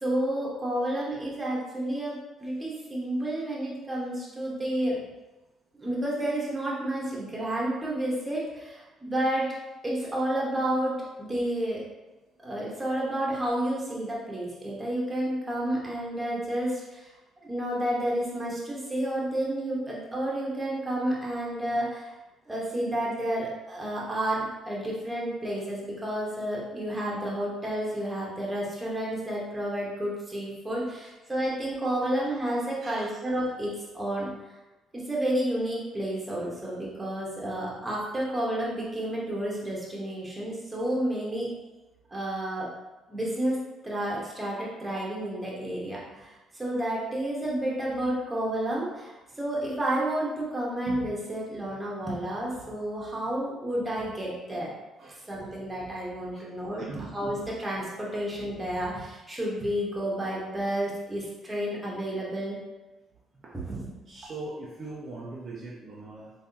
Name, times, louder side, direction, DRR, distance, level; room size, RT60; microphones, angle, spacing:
voice 1, 0.0-5.1 5.7-9.6 9.8-11.8 12.4-17.1 17.4-22.1 22.5-34.3 34.9-41.5 42.1-42.7 43.1-54.7 55.2-62.6 63.5-63.9, right 1 dB, 15° right, -5 dB, 1.2 m, -30 dB
voice 2, 56.8-57.1 63.4-63.5 64.1-66.3, right 2 dB, 50° right, -4 dB, 0.6 m, -40 dB
3.5 x 3.1 x 2.8 m, 1.1 s
cardioid pair, 80°, 0 cm